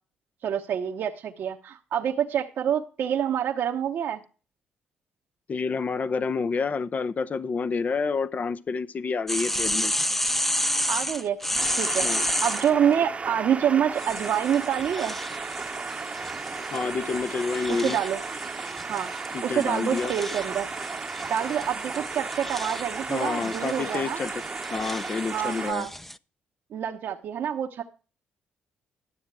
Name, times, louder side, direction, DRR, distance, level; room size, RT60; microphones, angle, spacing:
voice 1, 0.4-4.2 10.9-11.4 11.8-15.2 17.7-18.2 18.9-20.7 21.3-24.2 25.3-25.9 26.7-27.8, right 9 dB, 70° right, 1.0 m, -27 dB
voice 2, 5.5-9.9 12.0-12.3 16.7-18.0 19.3-20.1 23.1-24.4 24.7-25.9, left 4 dB, 45° left, 0.7 m, -29 dB
sound 1, 9.3-12.7 14.0-26.2, left 1 dB, 5° left, 0.6 m, -32 dB
sound 2, 11.6-25.7, right 4 dB, 35° right, 0.9 m, -35 dB
12.5 x 7.2 x 4.7 m
supercardioid pair, 60°, 4 cm